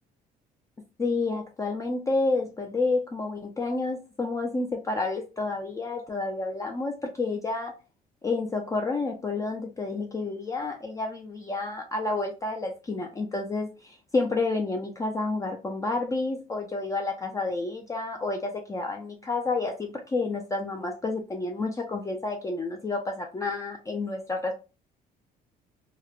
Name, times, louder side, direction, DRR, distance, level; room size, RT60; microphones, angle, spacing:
voice 1, 1.0-7.7 8.2-24.5, left 3 dB, 20° left, 0.4 m, -30 dB
3.0 x 2.0 x 2.3 m
cardioid pair, 110°, 17 cm